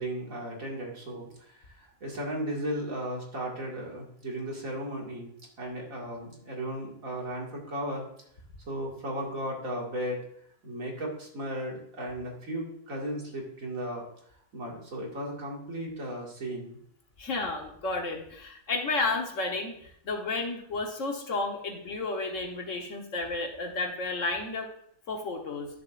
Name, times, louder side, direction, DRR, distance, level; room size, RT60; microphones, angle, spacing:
voice 1, 0.0-5.3 5.6-8.1 8.7-10.2 10.6-14.1 14.5-16.8, right 1 dB, 75° right, -2 dB, 2.6 m, -35 dB
voice 2, 17.2-24.7 25.1-25.7, left 3 dB, 65° left, 2 dB, 1.6 m, -32 dB
12.5 x 6.9 x 2.5 m, 0.67 s
omnidirectional pair, 1.5 m